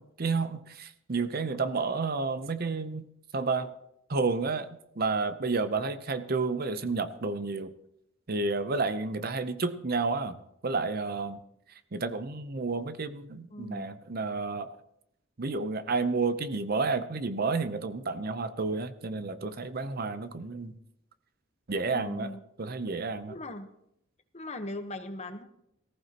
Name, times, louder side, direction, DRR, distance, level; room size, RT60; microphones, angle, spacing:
voice 1, 0.0-3.1 3.3-3.7 4.1-4.7 5.0-7.7 8.3-10.4 10.6-11.4 11.9-14.7 15.4-20.8 21.7-22.3 22.6-23.3, right 4 dB, 45° right, 12 dB, 0.6 m, -30 dB
voice 2, 13.5-14.0 21.8-22.4 23.3-23.7 24.3-25.5, left 1 dB, 30° left, 7 dB, 1.0 m, -39 dB
19.0 x 14.5 x 2.9 m, 0.77 s
head